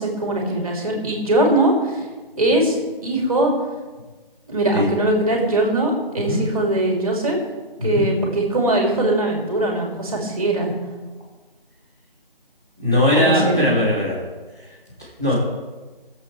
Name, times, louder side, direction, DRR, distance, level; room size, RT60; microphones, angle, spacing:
voice 1, 0.0-2.0 2.4-2.8 3.0-3.5 4.5-7.4 7.8-10.7 13.1-13.6, right 1 dB, 35° right, 0 dB, 2.8 m, -21 dB
voice 2, 12.8-14.2 15.2-15.3, left 1 dB, 5° left, -11 dB, 0.9 m, -19 dB
20.5 x 7.9 x 3.4 m, 1.3 s
figure-of-eight pair, 160°, 29 cm